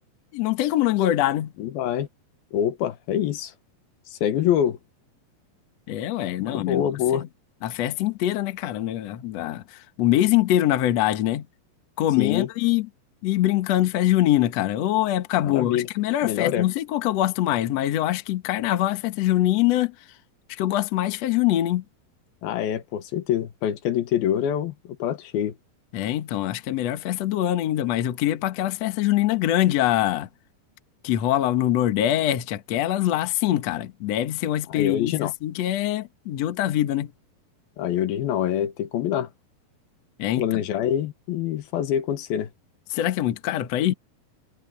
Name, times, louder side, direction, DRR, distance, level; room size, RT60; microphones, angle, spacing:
voice 1, 0.3-1.5 5.9-6.8 7.1-7.2 7.6-11.5 12.0-12.9 13.2-19.9 20.5-21.8 25.9-30.3 31.0-37.1 40.2-40.6 42.9-43.9, left 13 dB, 60° left, 1.9 m, -23 dB
voice 2, 1.6-2.1 2.5-3.5 4.1-4.8 6.4-7.2 12.2-12.5 15.4-15.9 16.2-16.7 22.4-24.7 25.0-25.5 34.7-35.3 37.8-39.3 40.4-42.5, left 10 dB, 80° left, 3.1 m, -25 dB
omnidirectional pair, 4.3 m